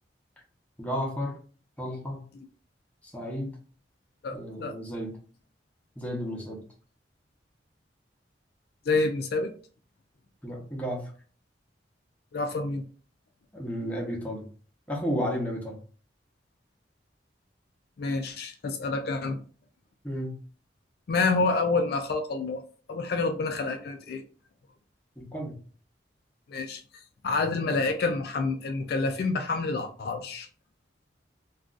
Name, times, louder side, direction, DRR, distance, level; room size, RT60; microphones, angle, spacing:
voice 1, 0.8-1.4 1.8-2.2 3.0-3.6 4.3-5.2 6.0-6.6 10.4-11.1 13.5-14.5 14.9-15.8 20.0-20.4 25.2-25.6, equal, 10° left, -1 dB, 0.7 m, -33 dB
voice 2, 4.2-4.8 8.9-9.5 12.3-12.8 18.0-19.4 21.1-22.6 22.9-24.2 26.5-26.8 27.2-30.5, left 3 dB, 55° left, 5 dB, 0.3 m, -28 dB
2.3 x 2.3 x 3.7 m, 0.41 s
head